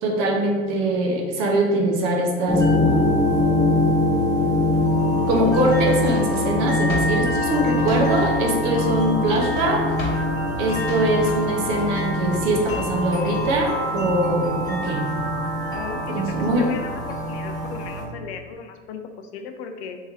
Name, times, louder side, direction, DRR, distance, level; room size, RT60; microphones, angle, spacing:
voice 1, 0.0-3.1 5.3-9.8 10.6-15.1 16.1-16.7, right 1 dB, 45° right, 0 dB, 0.9 m, -22 dB
sound 1, 2.5-18.0, left 1 dB, 10° left, 1.0 m, -23 dB
Drawer open or close, 5.5-8.6 8.9-13.1, left 2 dB, 35° left, 1.3 m, -36 dB
voice 2, 15.7-16.9 17.2-20.0, left 6 dB, 60° left, 5 dB, 0.6 m, -36 dB
3.2 x 3.2 x 3.5 m, 1.5 s
hypercardioid pair, 95°, 38 cm